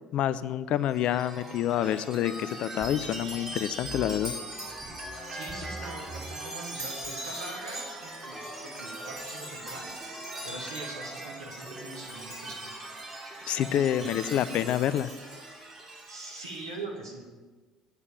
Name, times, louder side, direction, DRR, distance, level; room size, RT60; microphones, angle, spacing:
voice 1, 0.1-4.3 13.5-15.1, left 11 dB, 50° left, 15 dB, 0.4 m, -27 dB
Chime, 0.8-16.6, right 1 dB, 20° right, 2.8 m, -40 dB
voice 2, 5.3-10.0 10.4-12.7 13.7-14.3 16.1-17.3, right 2 dB, 75° right, -2 dB, 2.4 m, -42 dB
9.0 x 8.2 x 8.7 m, 1.3 s
figure-of-eight pair, 55°, 2 cm